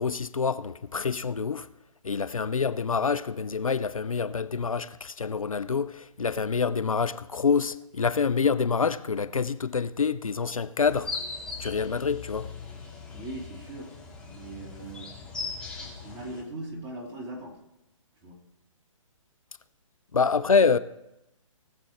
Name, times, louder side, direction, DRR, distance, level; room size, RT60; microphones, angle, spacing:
voice 1, 0.0-1.7 2.0-11.1 11.6-12.5 20.1-20.8, left 5 dB, 75° left, 0.6 m, -26 dB
sound 1, 10.8-16.4, left 4 dB, 5° left, 2.5 m, -39 dB
voice 2, 13.1-15.1 16.0-17.6 18.2-18.4, right 2 dB, 20° right, 2.8 m, -40 dB
19.0 x 7.6 x 4.3 m
figure-of-eight pair, 135°, 18 cm